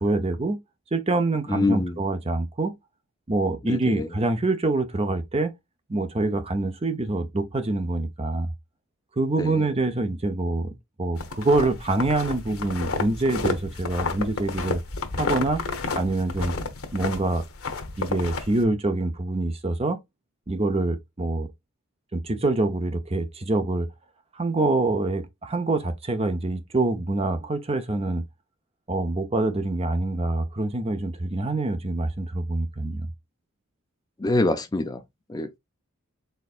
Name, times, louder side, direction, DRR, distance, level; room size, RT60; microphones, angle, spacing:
voice 1, 0.0-0.6 0.9-2.8 3.3-5.5 5.9-8.5 9.2-14.8 15.2-15.6 15.9-16.5 16.9-17.4 18.0-20.0 20.5-21.5 22.1-23.9 24.3-28.2 28.9-33.1, right 2 dB, 30° right, 0.7 m, -25 dB
voice 2, 1.5-2.0 3.7-4.1 9.4-9.7 34.2-35.0 35.3-35.6, left 2 dB, 20° left, 0.4 m, -25 dB
sound 1, 11.2-18.6, left 3 dB, 80° left, 1.0 m, -31 dB
4.3 x 3.9 x 2.4 m
head